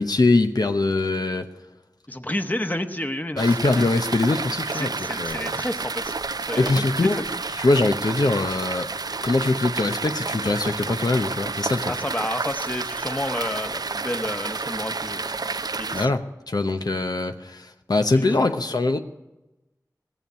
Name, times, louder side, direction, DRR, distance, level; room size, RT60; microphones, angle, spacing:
voice 1, 0.0-1.5 3.4-5.6 6.6-8.9 9.2-11.9 15.9-19.0, left 2 dB, 75° left, 6 dB, 0.8 m, -23 dB
voice 2, 2.1-3.9 4.7-6.8 7.1-7.2 11.9-15.4 15.7-16.1 18.4-18.5, left 1 dB, 25° left, 7 dB, 1.1 m, -31 dB
sound 1, 3.4-16.1, right 4 dB, 70° right, 0.4 m, -30 dB
18.0 x 7.2 x 9.3 m, 1.0 s
wide cardioid pair, 40°, 7 cm